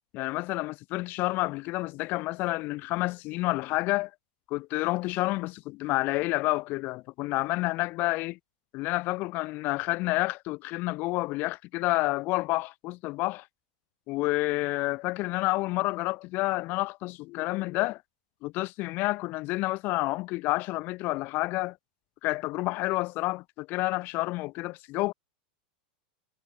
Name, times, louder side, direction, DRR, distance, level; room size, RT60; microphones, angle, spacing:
voice 1, 0.1-4.1 4.5-8.4 8.7-13.5 14.1-18.0 18.4-21.8 22.2-25.1, left 21 dB, 45° left, 1.2 m, -29 dB
supercardioid pair, 140°, 5 cm